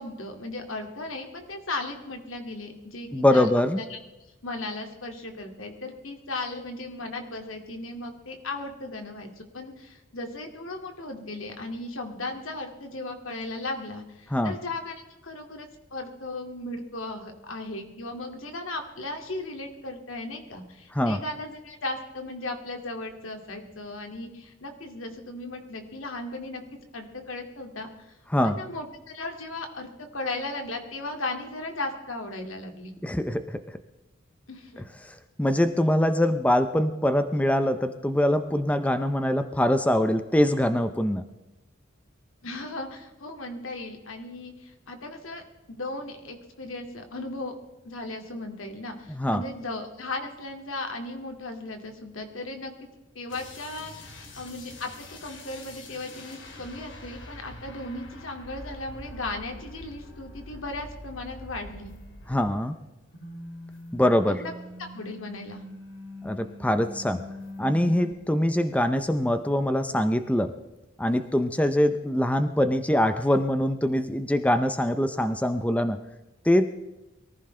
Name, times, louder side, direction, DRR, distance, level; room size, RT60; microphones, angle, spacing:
voice 1, 0.0-3.5 3.8-4.0 4.4-26.6 26.9-27.9 28.4-32.9 34.5-34.9 42.4-45.4 45.7-47.5 47.8-52.7 53.2-61.9 64.3-64.5 64.8-65.6, left 2 dB, 80° left, 4 dB, 2.3 m, -36 dB
voice 2, 3.1-3.8 14.3-14.5 20.9-21.2 28.3-28.6 33.0-33.4 34.8-41.2 49.1-49.4 62.3-62.7 63.9-64.4 66.2-67.2 67.6-70.5 71.0-76.0 76.4-76.7, left 1 dB, 5° left, 9 dB, 0.6 m, -23 dB
sound 1, 53.3-62.8 63.1-68.1, left 1 dB, 60° left, 2.3 m, -44 dB
23.0 x 15.0 x 3.3 m, 1.0 s
head